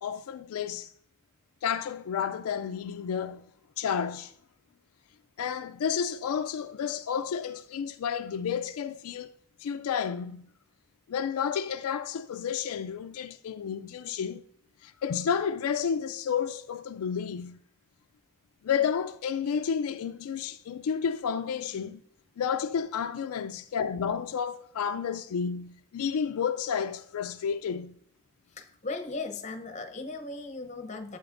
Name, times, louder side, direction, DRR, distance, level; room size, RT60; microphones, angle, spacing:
voice 1, 0.0-0.9 1.6-3.4 3.8-4.3 5.4-9.3 9.6-10.5 11.1-14.4 14.8-17.6 18.6-22.0 22.4-28.0, left 7 dB, 75° left, 0.3 m, -31 dB
voice 2, 28.5-31.2, left 3 dB, 30° left, 0.7 m, -37 dB
12.0 x 7.8 x 2.5 m
head